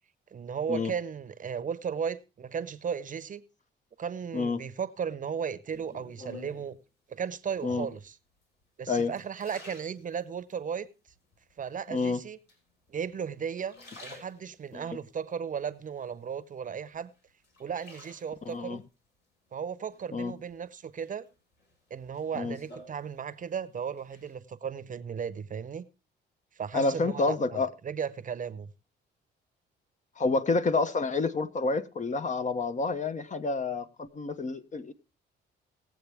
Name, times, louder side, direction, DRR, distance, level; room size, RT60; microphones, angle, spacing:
voice 1, 0.3-3.4 4.0-6.8 7.1-8.1 8.8-10.9 11.6-12.4 12.9-17.1 17.6-18.8 19.5-21.2 21.9-25.9 26.6-28.7, right 7 dB, 40° right, 0.8 m, -35 dB
sound 1, 5.7-6.8 7.6-8.1 8.6-10.6 11.1-11.7 12.5-13.2 13.5-14.8 15.3-16.5 16.9-18.6 19.9-20.5 21.0-23.6 23.8-24.3, left 2 dB, 60° left, 4.3 m, -51 dB
voice 2, 11.9-12.2 14.7-14.8 18.4-18.8 20.1-20.3 22.3-22.6 26.7-27.7 30.2-34.9, left 3 dB, 40° left, 1.0 m, -29 dB
18.5 x 7.7 x 3.4 m
cardioid pair, 90°, 20 cm